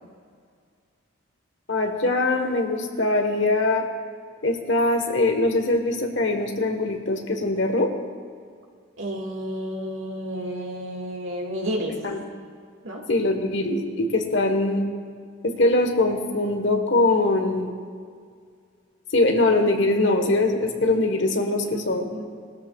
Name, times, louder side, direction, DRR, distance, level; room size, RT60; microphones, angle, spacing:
voice 1, 1.7-3.8 4.4-7.9 12.0-12.2 13.1-14.9 15.4-17.7 19.1-22.1, left 2 dB, 60° left, 4 dB, 1.3 m, -22 dB
voice 2, 9.0-12.0 12.8-13.0 21.6-22.2, equal, 70° right, 0 dB, 1.9 m, -31 dB
20.0 x 13.0 x 2.4 m, 2.1 s
head